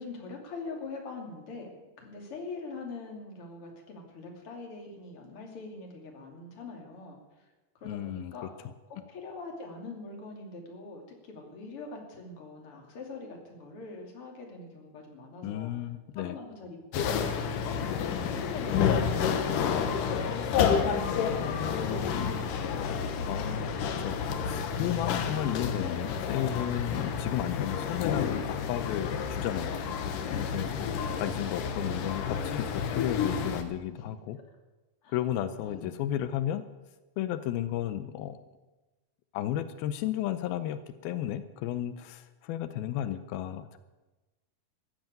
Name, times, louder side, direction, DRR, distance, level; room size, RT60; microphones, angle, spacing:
voice 1, 0.0-1.7 2.0-7.4 7.8-8.5 9.1-15.7 16.1-22.2 33.9-34.0 35.0-35.2 35.6-36.2, left 3 dB, 40° left, 1 dB, 3.3 m, -43 dB
voice 2, 7.8-8.3 15.4-16.4 23.3-23.7 24.0-29.8 30.1-30.7 31.2-34.4 35.1-36.6 37.2-38.4 39.3-43.8, left 12 dB, 85° left, 11 dB, 2.6 m, -33 dB
sound 1, 16.9-33.6, left 6 dB, 70° left, 2.6 m, -30 dB
14.5 x 10.5 x 9.1 m, 1.1 s
omnidirectional pair, 4.2 m